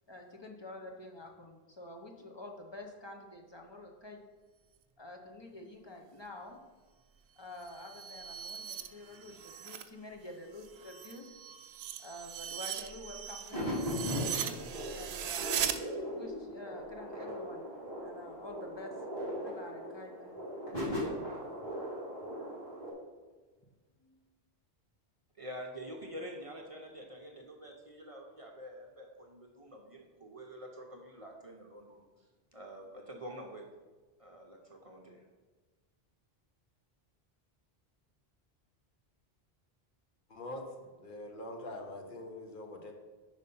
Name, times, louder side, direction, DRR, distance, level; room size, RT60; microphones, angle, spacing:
voice 1, 0.1-4.2 5.0-6.6 7.4-11.3 12.0-14.6 14.9-15.7 16.1-17.7 18.0-18.9 19.4-20.3 20.8-21.2 22.7-22.9 24.0-24.2, left 2 dB, 30° left, 1 dB, 0.7 m, -48 dB
sound 1, 7.5-9.9 10.3-15.8, right 9 dB, 80° right, 0.8 m, -39 dB
sound 2, 13.5-22.9, equal, 80° left, 2.6 m, -39 dB
voice 2, 25.3-33.6 34.2-35.3, equal, 40° right, 1 dB, 0.7 m, -47 dB
voice 3, 40.3-42.9, left 1 dB, 55° left, 2 dB, 1.0 m, -44 dB
5.5 x 5.0 x 5.4 m, 1.3 s
omnidirectional pair, 1.0 m